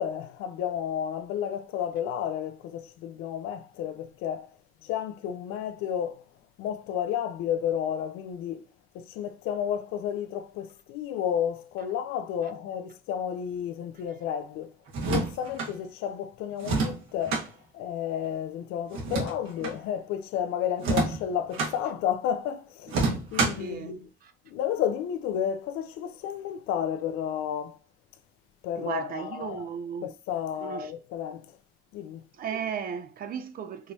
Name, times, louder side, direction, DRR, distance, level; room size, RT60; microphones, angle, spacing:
voice 1, 0.0-4.6 4.8-6.2 6.6-8.6 8.9-14.7 15.0-17.5 17.7-24.1 24.5-27.8 28.6-29.7 30.0-31.5 31.9-32.2, left 9 dB, 85° left, 0.6 m, -32 dB
sound 1, 14.9-15.7 16.6-17.5 18.9-19.8 20.8-21.7 22.9-23.7, right 3 dB, 70° right, 1.5 m, -28 dB
voice 2, 23.6-23.9 24.2-24.3 28.8-30.1 30.6-30.9 32.4-33.9, right 7 dB, 45° right, 0.6 m, -35 dB
4.9 x 3.1 x 2.7 m
cardioid pair, 135°, 21 cm